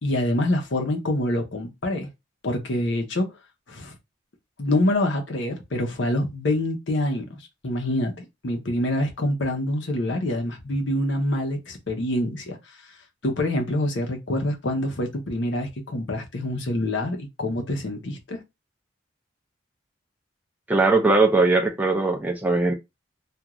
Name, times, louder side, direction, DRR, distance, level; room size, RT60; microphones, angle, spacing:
voice 1, 0.0-2.1 2.4-3.3 3.7-4.0 4.6-7.3 7.6-12.6 13.2-18.4, left 1 dB, 70° left, 0.8 m, -26 dB
voice 2, 20.7-22.7, right 3 dB, 10° right, 0.4 m, -20 dB
2.4 x 2.4 x 2.9 m
head